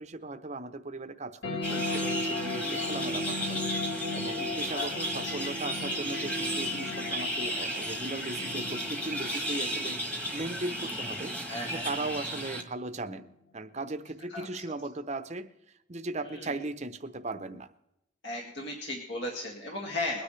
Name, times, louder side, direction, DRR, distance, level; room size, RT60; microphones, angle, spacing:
voice 1, 0.0-3.7 4.1-10.0 10.3-11.4 11.6-13.3 13.5-15.5 15.9-17.7, right 2 dB, 35° right, 9 dB, 0.8 m, -37 dB
sound 1, 1.4-12.4, left 2 dB, 75° left, 4.1 m, -37 dB
sound 2, 1.6-12.6, right 1 dB, 5° left, 1.5 m, -34 dB
voice 2, 2.6-3.0 4.7-4.9 8.6-8.7 11.5-11.9 14.3-14.5 16.2-16.5 18.2-20.2, left 2 dB, 60° left, -2 dB, 2.2 m, -36 dB
22.0 x 9.9 x 3.2 m, 0.84 s
head